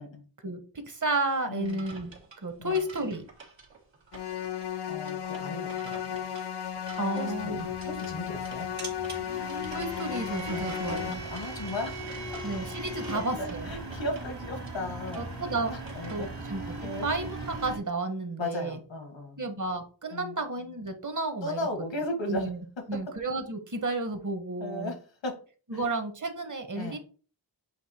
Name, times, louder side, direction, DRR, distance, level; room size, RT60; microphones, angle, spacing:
voice 1, 0.4-2.1 2.4-3.3 7.0-7.7 9.7-11.2 12.4-13.7 15.1-15.7 16.1-18.8 19.4-21.7 22.3-22.6 22.9-24.9 25.7-27.0, right 2 dB, 40° right, 7 dB, 1.2 m, -32 dB
voice 2, 1.5-1.8 2.6-2.8 4.9-6.2 7.1-8.7 10.5-10.7 11.3-12.4 13.1-15.2 15.7-16.3 16.8-17.1 18.4-19.4 20.1-20.4 21.4-22.5 22.8-23.0 24.6-25.0 25.2-25.4 25.7-25.8 26.7-27.0, left 2 dB, 80° left, 3 dB, 1.7 m, -36 dB
sound 1, 1.6-16.3, right 4 dB, 75° right, 1.7 m, -50 dB
sound 2, 4.1-11.1, left 9 dB, 60° left, 0.6 m, -35 dB
sound 3, 7.3-17.8, right 2 dB, 60° right, 1.8 m, -39 dB
7.8 x 2.8 x 4.3 m, 0.38 s
wide cardioid pair, 95°, 45 cm